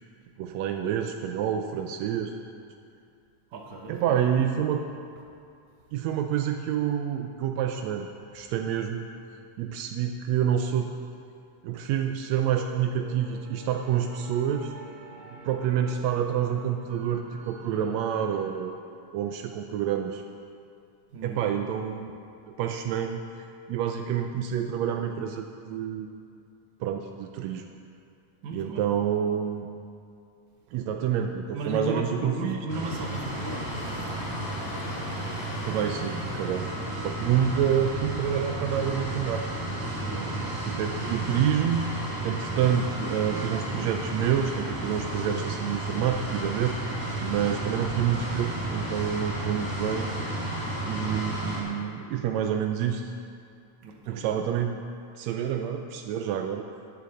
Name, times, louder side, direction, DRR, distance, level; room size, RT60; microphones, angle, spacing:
voice 1, 0.4-2.3 3.9-4.8 5.9-8.1 8.3-9.0 9.6-10.9 11.6-14.7 15.4-18.7 19.1-20.2 21.2-22.2 22.5-23.2 23.7-26.1 26.8-27.7 28.5-29.7 30.7-32.6 35.5-36.7 37.0-39.5 40.7-42.0 42.2-46.7 47.2-50.1 50.9-53.1 54.1-54.8 55.2-56.6, right 9 dB, 90° right, 5 dB, 1.5 m, -28 dB
voice 2, 3.5-4.2 21.1-21.4 28.4-28.9 31.5-33.7 40.0-40.4 53.8-54.3, right 2 dB, 70° right, 1 dB, 2.3 m, -35 dB
sound 1, 12.2-18.5, right 2 dB, 45° right, 2.0 m, -47 dB
sound 2, 32.7-51.6, right 1 dB, 10° right, 1.2 m, -32 dB
sound 3, 33.0-38.1, left 3 dB, 70° left, 2.3 m, -44 dB
12.0 x 10.0 x 4.2 m, 2.4 s
omnidirectional pair, 3.7 m